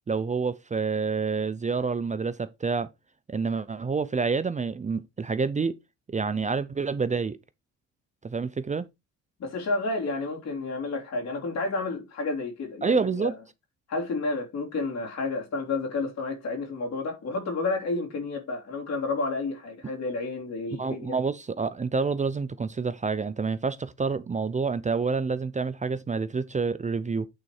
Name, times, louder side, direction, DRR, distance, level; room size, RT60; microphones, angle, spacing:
voice 1, 0.1-2.9 3.3-5.8 6.1-7.4 8.2-8.8 12.8-13.3 20.8-27.3, right 4 dB, 25° right, 0.6 m, -28 dB
voice 2, 9.4-13.3 13.9-21.2, left 3 dB, 60° left, 3.4 m, -30 dB
8.9 x 4.1 x 4.8 m
cardioid pair, 90°, 30 cm